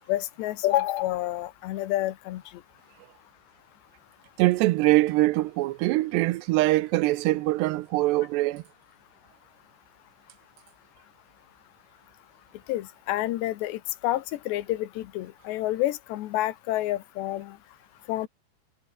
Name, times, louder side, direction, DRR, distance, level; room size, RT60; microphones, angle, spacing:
voice 1, 0.1-2.4 12.7-17.6 18.1-18.3, left 15 dB, 80° left, 3.4 m, -28 dB
voice 2, 4.4-8.6, right 18 dB, 85° right, 2.8 m, -23 dB
omnidirectional pair, 4.9 m